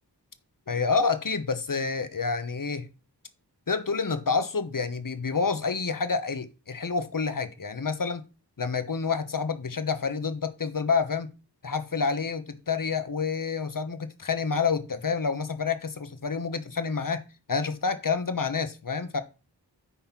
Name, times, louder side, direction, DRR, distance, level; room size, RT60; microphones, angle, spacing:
voice 1, 0.7-2.9 3.7-8.2 8.6-11.3 11.6-19.2, left 5 dB, 50° left, 1.1 m, -28 dB
9.5 x 4.2 x 5.9 m
wide cardioid pair, 60°, 42 cm